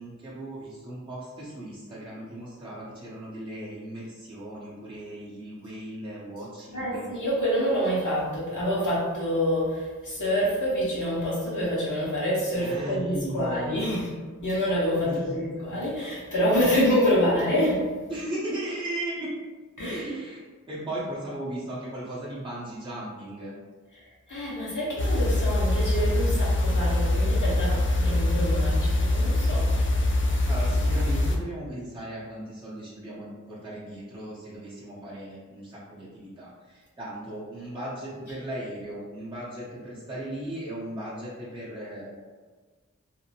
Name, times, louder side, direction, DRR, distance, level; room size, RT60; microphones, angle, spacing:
voice 1, 0.0-7.1 12.5-14.0 15.0-15.9 18.1-19.4 19.9-20.4 20.7-23.5 30.5-42.2, right 1 dB, 15° right, -8 dB, 0.7 m, -37 dB
voice 2, 6.7-14.1 14.4-17.9 19.8-20.0 23.9-29.7, equal, 70° left, -7 dB, 1.0 m, -27 dB
sound 1, 25.0-31.4, left 1 dB, 40° left, 0.4 m, -23 dB
2.6 x 2.1 x 2.7 m, 1.4 s
wide cardioid pair, 45°, 32 cm